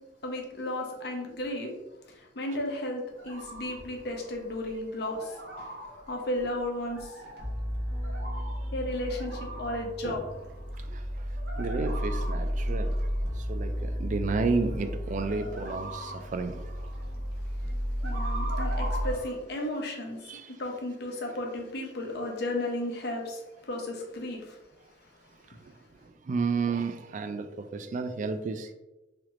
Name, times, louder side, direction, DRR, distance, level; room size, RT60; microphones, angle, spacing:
voice 1, 0.2-1.7 2.0-7.2 8.7-10.3 18.0-24.6, left 1 dB, 60° left, 1 dB, 0.8 m, -34 dB
sound 1, 3.1-19.3, right 1 dB, 60° right, 0.9 m, -43 dB
sound 2, 7.4-19.1, equal, 5° right, 1.4 m, -33 dB
voice 2, 10.9-11.3 11.6-16.7 20.3-20.5 25.6-25.7 26.2-28.7, right 4 dB, 45° right, 9 dB, 0.3 m, -32 dB
3.7 x 3.3 x 3.1 m, 1.0 s
head